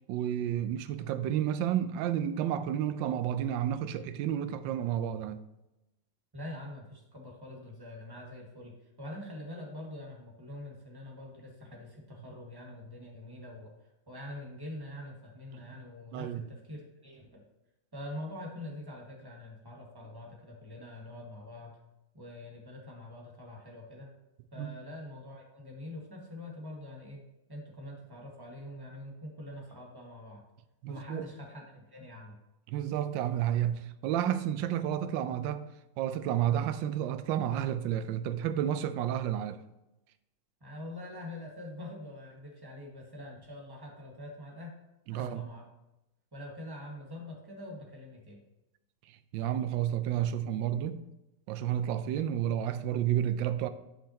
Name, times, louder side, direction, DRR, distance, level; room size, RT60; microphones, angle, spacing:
voice 1, 0.1-5.4 15.5-15.6 16.1-16.4 24.6-24.7 30.8-31.3 32.7-35.7 36.0-39.6 45.1-45.5 49.3-51.0 51.5-53.7, right 10 dB, 75° right, 1.2 m, -31 dB
voice 2, 6.3-17.4 17.9-21.8 22.1-24.1 24.5-27.2 27.5-30.4 30.9-32.4 40.6-44.8 45.1-45.7 46.3-48.4, left 1 dB, 10° right, 1.5 m, -45 dB
11.5 x 5.5 x 2.9 m
omnidirectional pair, 2.2 m